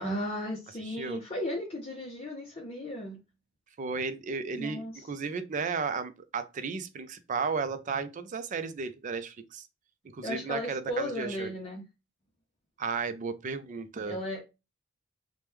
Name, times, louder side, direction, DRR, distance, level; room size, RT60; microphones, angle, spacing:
voice 1, 0.0-3.2 4.6-5.1 10.2-11.8 14.0-14.4, left 1 dB, 30° left, 0.6 m, -35 dB
voice 2, 0.9-1.2 3.8-9.7 10.1-11.5 12.8-14.2, right 5 dB, 40° right, 0.4 m, -34 dB
3.0 x 2.1 x 3.3 m
head